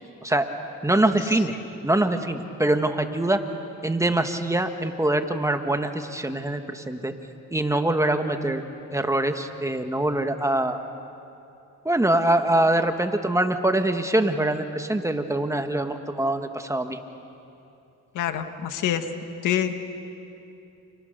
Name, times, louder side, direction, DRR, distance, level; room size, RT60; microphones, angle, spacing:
voice 1, 0.8-1.5 1.8-3.4 3.8-7.1 7.5-8.6 8.9-10.8 11.9-17.0, right 1 dB, 10° right, 6 dB, 1.8 m, -24 dB
voice 2, 18.1-19.0 19.4-19.7, left 10 dB, 85° left, 7 dB, 1.8 m, -25 dB
29.5 x 28.5 x 6.9 m, 2.7 s
cardioid pair, 90°, 30 cm